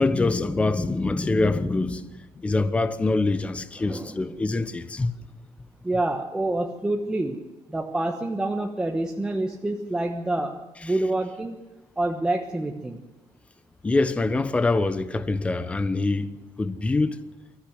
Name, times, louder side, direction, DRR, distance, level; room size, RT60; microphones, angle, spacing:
voice 1, 0.0-5.1 13.8-16.3 16.6-17.2, left 3 dB, 15° left, 1.0 m, -24 dB
voice 2, 3.8-4.3 5.8-11.6 12.0-13.0, right 2 dB, 10° right, 1.2 m, -27 dB
25.0 x 14.0 x 8.0 m
cardioid pair, 175°, 9 cm